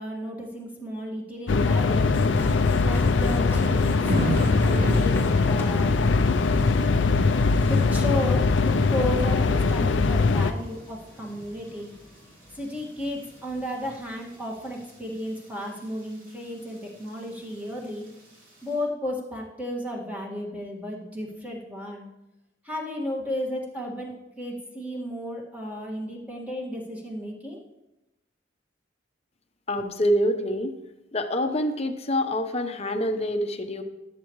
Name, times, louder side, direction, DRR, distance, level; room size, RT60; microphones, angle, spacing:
voice 1, 0.0-2.1 2.8-5.9 7.7-11.9 12.5-18.1 18.6-22.1 22.6-27.6, left 1 dB, 10° right, -3 dB, 2.0 m, -33 dB
sound 1, 1.5-10.5, left 4 dB, 65° left, 0.5 m, -21 dB
Thunder / Rain, 1.9-18.8, equal, 45° right, 3.4 m, -38 dB
sound 2, 2.1-14.1, left 1 dB, 10° left, 1.2 m, -43 dB
voice 2, 29.7-30.8 31.1-33.8, equal, 35° left, 6 dB, 0.9 m, -26 dB
18.5 x 8.3 x 3.2 m, 0.96 s
head